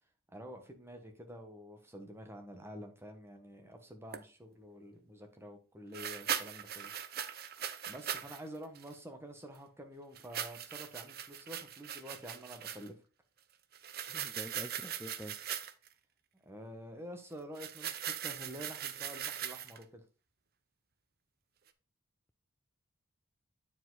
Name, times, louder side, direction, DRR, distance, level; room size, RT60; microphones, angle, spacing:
voice 1, 0.3-6.9 7.9-12.9 16.4-20.0, equal, 10° right, 1.3 m, -48 dB
sound 1, 4.1-4.2 5.9-8.4 8.7-8.9 10.1-12.9 13.7-15.9 17.5-19.8, right 9 dB, 45° right, 0.7 m, -40 dB
voice 2, 14.1-15.4, equal, 5° left, 0.4 m, -46 dB
8.8 x 4.9 x 3.9 m
head